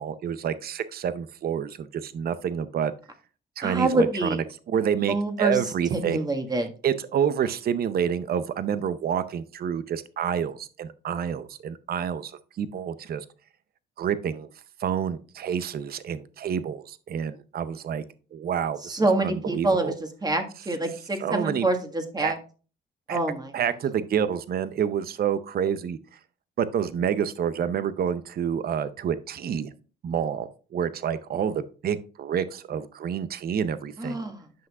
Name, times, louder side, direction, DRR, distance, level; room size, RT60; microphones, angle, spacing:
voice 1, 0.0-2.9 3.6-6.3 6.6-12.3 12.6-13.2 14.0-14.5 14.8-18.0 18.3-19.9 21.2-21.7 22.2-22.3 23.1-23.2 23.5-26.0 26.6-29.7 30.0-34.2, right 8 dB, 50° right, 13 dB, 0.6 m, -28 dB
voice 2, 3.6-4.4 5.1-5.6 5.9-6.7 18.8-19.9 20.2-22.4 23.1-23.5 34.0-34.7, right 2 dB, 20° right, 5 dB, 1.6 m, -26 dB
10.5 x 6.0 x 2.4 m, 0.37 s
cardioid pair, 90°, 20 cm